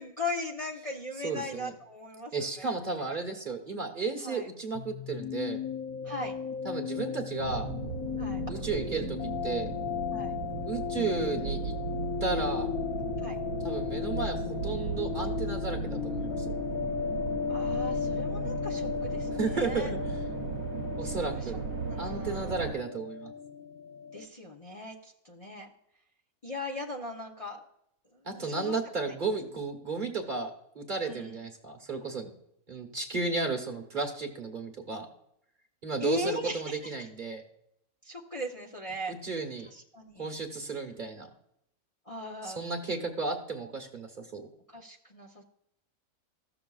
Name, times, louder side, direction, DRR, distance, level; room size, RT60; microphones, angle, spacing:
voice 1, 0.0-2.7 4.2-4.5 6.0-6.3 8.2-8.4 10.1-10.4 13.2-13.4 17.5-19.9 21.0-21.5 21.8-22.8 24.1-25.7 26.4-27.6 28.1-29.1 31.0-31.4 36.0-36.8 38.0-39.1 39.7-40.3 42.1-42.6 44.7-45.4, left 2 dB, 30° left, -1 dB, 0.8 m, -39 dB
voice 2, 1.2-1.7 2.3-5.6 6.6-7.7 8.5-9.2 9.4-9.7 10.7-11.7 12.2-12.7 13.6-16.5 19.4-20.0 21.0-21.6 22.0-23.3 28.2-32.3 32.7-35.1 35.8-37.4 39.1-39.7 40.2-41.3 42.4-44.5, right 4 dB, 35° right, 3 dB, 1.3 m, -33 dB
sound 1, 4.7-24.3, left 8 dB, 85° left, 1.1 m, -35 dB
sound 2, 7.4-22.7, right 6 dB, 75° right, 1.1 m, -37 dB
14.5 x 6.9 x 2.4 m, 0.76 s
omnidirectional pair, 1.5 m